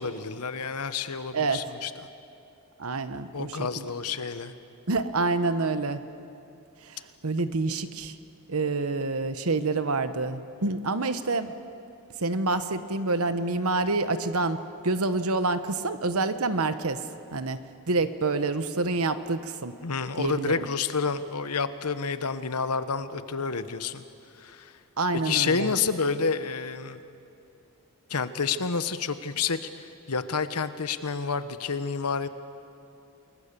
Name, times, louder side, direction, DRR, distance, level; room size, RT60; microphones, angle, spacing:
voice 1, 0.0-1.9 3.3-4.5 19.8-24.0 24.4-24.7 25.2-27.0 28.1-32.3, left 5 dB, 85° left, 11 dB, 1.1 m, -29 dB
voice 2, 2.8-3.9 4.9-6.0 6.8-8.1 8.5-11.5 12.2-17.0 17.3-17.6 17.9-19.7 20.2-20.7 25.0-25.7, right 3 dB, 70° right, 11 dB, 1.1 m, -27 dB
29.0 x 20.5 x 6.9 m, 2.6 s
head